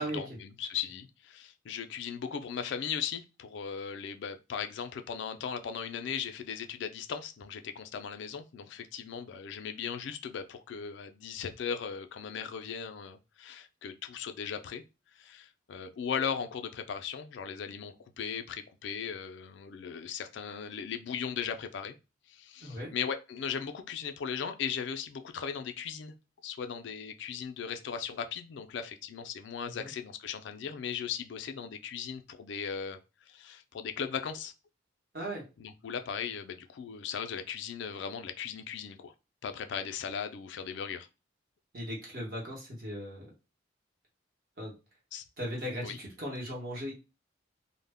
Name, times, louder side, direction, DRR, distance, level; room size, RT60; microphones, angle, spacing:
voice 1, 0.0-14.8 15.1-22.0 22.3-26.2 26.4-34.5 35.6-39.1 39.4-41.1 45.1-45.2 45.8-46.0, left 7 dB, 65° left, 0.3 m, -38 dB
voice 2, 22.6-22.9 29.6-29.9 35.1-35.4 41.7-43.3 44.6-44.7 45.4-46.9, equal, 50° right, 0.9 m, -37 dB
2.1 x 2.0 x 3.4 m
head